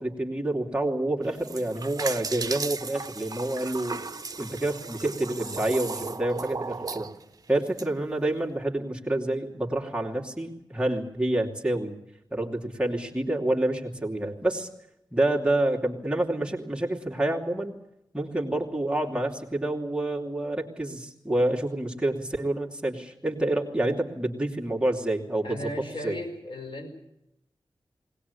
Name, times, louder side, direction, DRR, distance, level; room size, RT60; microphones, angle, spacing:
voice 1, 0.0-4.0 4.4-7.1 7.5-11.9 12.3-14.7 15.1-17.8 18.1-25.7 26.0-26.2, right 1 dB, 10° right, -1 dB, 2.9 m, -28 dB
sound 1, 1.2-7.9, right 4 dB, 45° right, 0.9 m, -36 dB
voice 2, 25.4-26.9, left 1 dB, 80° left, 5 dB, 4.8 m, -35 dB
21.0 x 19.5 x 8.3 m, 0.84 s
wide cardioid pair, 85°, 9 cm